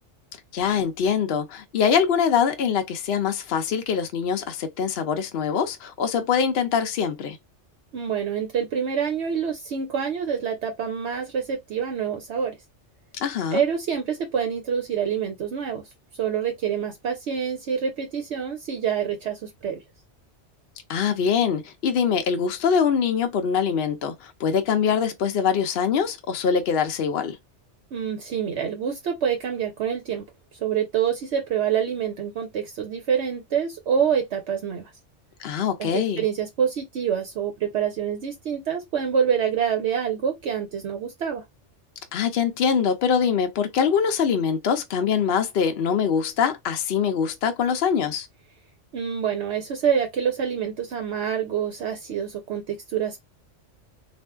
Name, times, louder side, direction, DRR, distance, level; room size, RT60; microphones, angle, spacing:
voice 1, 0.5-7.4 13.2-13.6 20.9-27.4 35.4-36.2 42.1-48.3, left 7 dB, 65° left, 0.7 m, -23 dB
voice 2, 7.9-12.6 13.5-15.8 16.2-19.8 27.9-30.3 30.5-34.9 35.8-41.4 48.9-53.2, right 7 dB, 70° right, 0.9 m, -26 dB
3.5 x 2.4 x 2.2 m
omnidirectional pair, 1.2 m